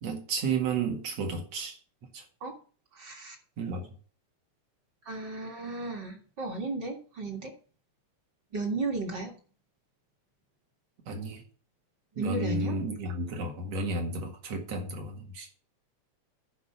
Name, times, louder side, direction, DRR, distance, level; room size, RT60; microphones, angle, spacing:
voice 1, 0.0-1.8 2.1-2.2 3.6-3.9 11.1-11.4 12.2-15.5, right 3 dB, 60° right, 2.9 m, -32 dB
voice 2, 2.9-3.4 5.1-7.5 8.5-9.4 12.2-12.8, right 2 dB, 40° right, 2.2 m, -34 dB
10.5 x 5.2 x 6.7 m
omnidirectional pair, 3.4 m